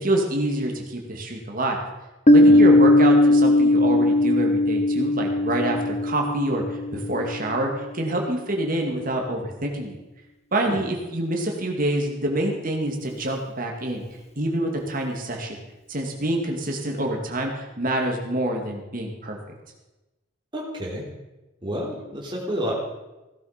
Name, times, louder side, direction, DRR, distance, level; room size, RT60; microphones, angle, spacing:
voice 1, 0.0-1.8 2.3-10.0 10.5-14.0 14.4-15.6 15.9-19.4, right 1 dB, 45° right, 2 dB, 2.3 m, -26 dB
Piano, 2.3-7.6, left 1 dB, 35° left, 0.9 m, -18 dB
voice 2, 20.5-21.0 21.6-22.7, equal, 25° right, -3 dB, 3.5 m, -30 dB
16.5 x 11.5 x 5.2 m, 1.1 s
head